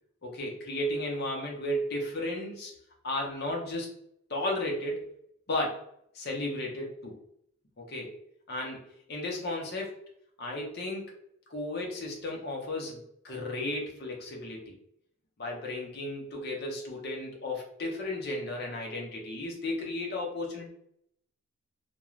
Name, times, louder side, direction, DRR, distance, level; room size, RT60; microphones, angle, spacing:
voice 1, 0.2-2.7 3.0-3.9 4.3-5.1 5.5-5.8 6.1-7.1 7.8-8.2 8.5-8.8 9.1-9.9 10.4-11.1 11.5-14.7 15.4-20.7, left 1 dB, 45° left, 0 dB, 0.7 m, -34 dB
2.4 x 2.2 x 3.0 m, 0.72 s
head